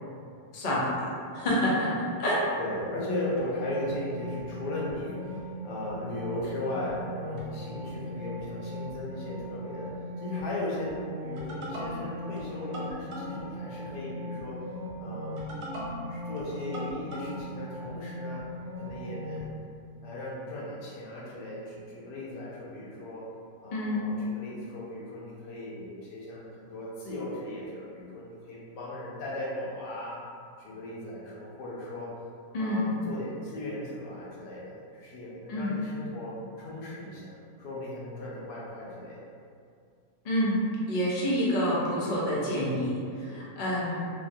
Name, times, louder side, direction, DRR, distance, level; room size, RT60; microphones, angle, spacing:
voice 1, 0.5-1.1 1.3-1.9 2.2-2.4 23.7-24.0 32.5-32.9 35.5-35.7 40.2-40.6 40.9-44.1, equal, 70° left, -6 dB, 0.4 m, -28 dB
voice 2, 2.6-14.6 15.0-15.4 16.1-18.5 18.8-19.5 20.0-23.3 23.6-30.2 30.6-32.1 32.6-39.2 43.2-43.5, left 1 dB, 85° left, -6 dB, 1.3 m, -37 dB
sound 1, 3.4-19.5, left 1 dB, 75° right, 1.2 m, -38 dB
3.2 x 2.2 x 2.6 m, 2.3 s
omnidirectional pair, 1.8 m